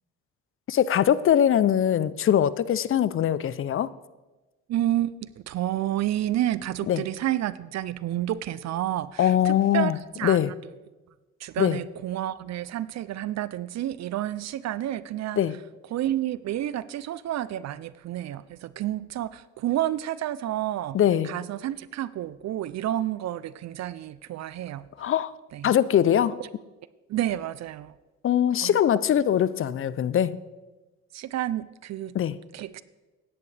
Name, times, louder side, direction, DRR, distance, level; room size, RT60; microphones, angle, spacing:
voice 1, 0.7-3.9 6.9-7.0 9.2-10.5 11.6-11.8 15.3-15.5 20.9-21.3 25.0-25.3 25.6-26.4 28.2-30.4 32.1-32.4, left 10 dB, 45° left, 0.5 m, -22 dB
voice 2, 4.7-5.2 5.5-9.9 10.2-10.4 11.4-15.4 15.9-21.0 21.2-24.8 25.5-25.7 27.1-27.9 28.6-28.7 31.1-32.1 32.5-32.8, right 13 dB, 60° right, 0.5 m, -30 dB
16.0 x 10.5 x 3.3 m
cardioid pair, 90°, 30 cm